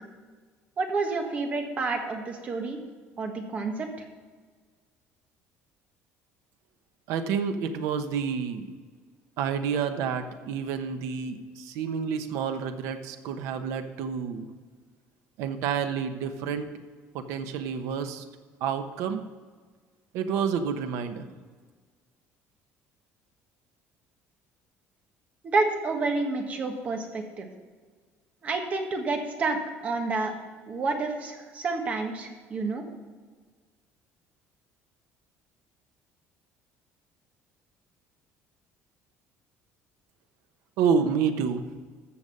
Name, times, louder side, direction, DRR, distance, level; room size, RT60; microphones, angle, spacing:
voice 1, 0.8-2.8 3.2-3.9 25.4-27.5 28.4-30.3 30.7-32.8, right 3 dB, 30° right, 4 dB, 1.5 m, -29 dB
voice 2, 7.1-8.7 9.4-14.5 15.4-16.7 17.1-18.2 18.6-19.2 20.1-21.3 40.8-41.6, right 6 dB, 75° right, 8 dB, 1.0 m, -29 dB
14.0 x 6.7 x 5.5 m, 1.5 s
cardioid pair, 175°, 5 cm